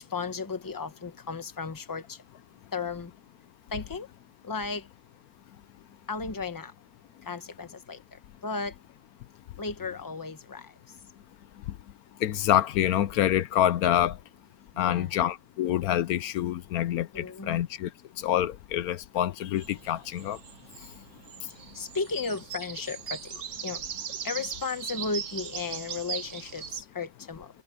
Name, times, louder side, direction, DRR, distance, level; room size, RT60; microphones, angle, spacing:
voice 1, 0.0-2.2 2.7-3.1 3.7-4.1 4.4-4.8 6.1-6.7 7.3-8.0 8.4-8.7 9.6-10.7 14.7-15.1 17.1-17.6 21.7-23.2 23.6-23.8 24.2-27.5, left 4 dB, 15° left, 1.0 m, -34 dB
voice 2, 12.2-14.2 14.8-17.9 18.2-20.4, left 11 dB, 75° left, 1.1 m, -26 dB
sound 1, 19.6-26.8, right 8 dB, 60° right, 1.3 m, -39 dB
omnidirectional pair, 1.6 m